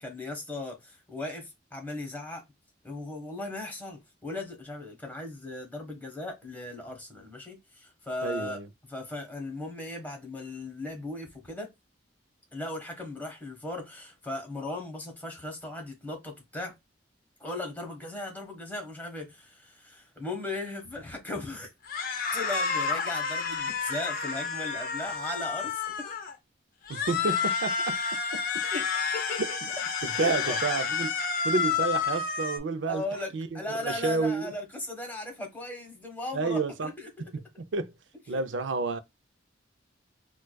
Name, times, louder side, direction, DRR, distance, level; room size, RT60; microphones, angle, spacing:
voice 1, 0.0-2.4 2.8-8.6 8.9-11.7 12.5-16.8 17.4-21.7 22.3-26.1 28.7-28.9 29.1-29.6 30.1-30.6 32.9-37.3 38.3-38.4, left 2 dB, 10° left, 1.0 m, -37 dB
voice 2, 8.2-8.7 26.9-28.0 28.3-28.4 30.0-31.1 31.4-33.0 33.3-34.5 36.3-36.9 37.6-37.9 38.3-39.0, right 4 dB, 85° right, 0.5 m, -30 dB
sound 1, 21.9-26.3 26.9-32.6, left 5 dB, 50° left, 0.6 m, -30 dB
4.5 x 2.3 x 2.2 m
head